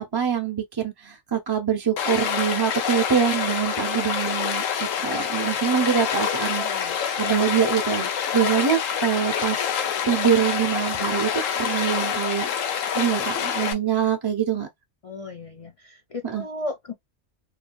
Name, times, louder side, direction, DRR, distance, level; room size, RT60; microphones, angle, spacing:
voice 1, 0.1-4.6 5.0-6.9 7.2-9.7 10.1-12.5 12.9-14.7 16.2-16.4, right 8 dB, 40° right, 0.3 m, -24 dB
Stream, 2.0-13.7, left 8 dB, 80° left, 1.0 m, -26 dB
voice 2, 6.6-7.0 15.0-16.9, left 2 dB, 55° left, 0.3 m, -35 dB
3.1 x 2.2 x 2.5 m
omnidirectional pair, 1.3 m